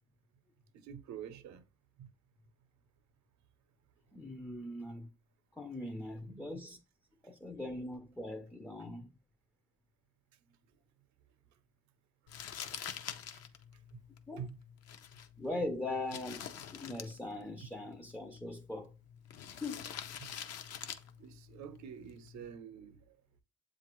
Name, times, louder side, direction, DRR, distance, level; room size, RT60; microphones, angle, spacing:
voice 1, 0.8-1.6 2.0-2.1 6.3-6.4 12.6-12.7 13.9-14.0 14.4-14.6 20.2-20.3 21.2-23.0, right 8 dB, 70° right, 0.7 m, -47 dB
voice 2, 4.1-5.1 5.5-6.8 7.2-9.1 14.3-14.5 15.4-18.9 19.5-19.9, left 2 dB, 5° left, 0.4 m, -41 dB
Crumpling crinkling, 12.3-22.4, left 9 dB, 60° left, 0.5 m, -47 dB
7.2 x 2.5 x 3.0 m
cardioid pair, 80°, 29 cm